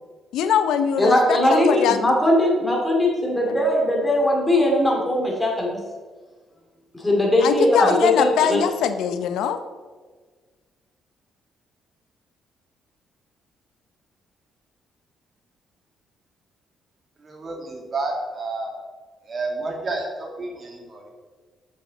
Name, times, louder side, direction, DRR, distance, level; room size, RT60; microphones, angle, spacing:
voice 1, 0.3-2.0 3.5-3.6 7.4-9.6, left 8 dB, 85° left, 10 dB, 0.6 m, -22 dB
voice 2, 1.0-5.8 6.9-8.6, left 1 dB, 10° left, -1 dB, 2.5 m, -20 dB
voice 3, 17.2-18.7 19.3-21.1, right 3 dB, 40° right, 1 dB, 2.0 m, -30 dB
7.4 x 7.3 x 4.1 m, 1.4 s
cardioid pair, 90°, 0 cm